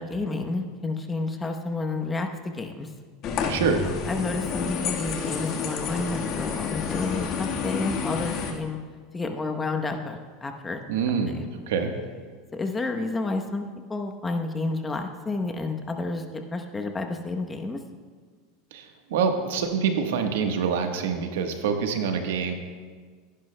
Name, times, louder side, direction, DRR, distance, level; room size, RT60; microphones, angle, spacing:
voice 1, 0.0-2.9 4.1-8.8 9.1-10.8 11.4-11.5 12.5-13.6 13.9-17.8, left 3 dB, 15° left, 4 dB, 0.9 m, -30 dB
sound 1, 3.2-8.5, left 6 dB, 45° left, 1.4 m, -29 dB
voice 2, 3.5-3.8 10.9-11.4 11.7-11.9 18.7-22.5, right 6 dB, 80° right, 5 dB, 1.2 m, -26 dB
16.0 x 10.5 x 2.2 m, 1.6 s
supercardioid pair, 120°, 0 cm